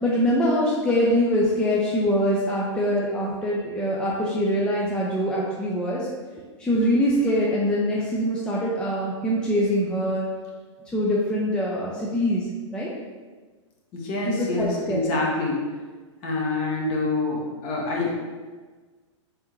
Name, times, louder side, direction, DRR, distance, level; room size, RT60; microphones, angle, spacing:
voice 1, 0.0-6.1 6.6-10.3 10.9-12.5 12.7-12.9 14.3-15.1, equal, 5° left, -5 dB, 0.4 m, -23 dB
voice 2, 13.9-15.6 16.2-18.1, left 2 dB, 40° left, -2 dB, 1.0 m, -26 dB
3.5 x 3.4 x 3.0 m, 1.4 s
hypercardioid pair, 130°, 16 cm